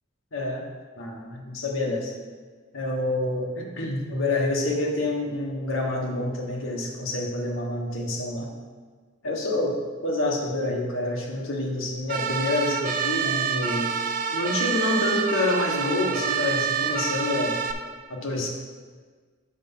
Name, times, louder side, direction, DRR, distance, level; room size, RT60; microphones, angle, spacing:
voice 1, 0.3-0.7 1.0-2.1 2.7-8.5 9.2-9.8 10.0-13.9 14.3-17.6 18.1-18.5, left 2 dB, 75° left, -1 dB, 1.3 m, -27 dB
sound 1, 12.1-17.7, right 7 dB, 40° right, 0.4 m, -27 dB
6.4 x 4.7 x 5.5 m, 1.5 s
head